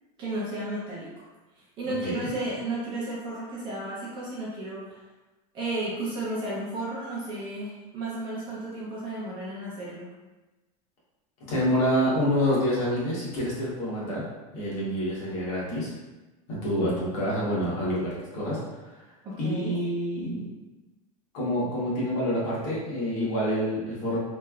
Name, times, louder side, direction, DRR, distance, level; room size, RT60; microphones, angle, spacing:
voice 1, 0.2-1.3 1.5-5.0 5.5-10.1 19.2-19.8, right 1 dB, 25° right, -6 dB, 0.6 m, -33 dB
voice 2, 1.8-2.3 11.5-14.2 14.5-15.9 16.5-18.6 19.4-20.5 21.3-24.2, equal, 35° left, -7 dB, 1.1 m, -27 dB
3.1 x 2.9 x 2.3 m, 1.1 s
supercardioid pair, 170°, 20 cm